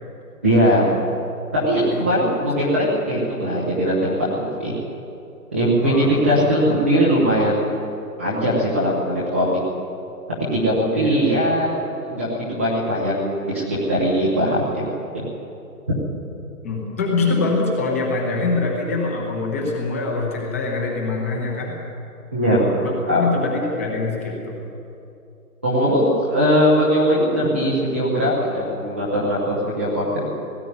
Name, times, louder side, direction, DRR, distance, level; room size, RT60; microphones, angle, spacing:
voice 1, 0.4-0.9 1.5-4.7 5.5-7.8 8.2-9.6 10.5-11.7 12.1-14.8 15.1-15.3 15.9-16.0 22.3-23.3 25.6-30.3, equal, 10° right, -10 dB, 0.8 m, -20 dB
voice 2, 16.6-21.7 22.8-24.6, left 3 dB, 10° left, -2 dB, 1.2 m, -24 dB
18.0 x 15.5 x 9.5 m, 2.7 s
hypercardioid pair, 175°, 46 cm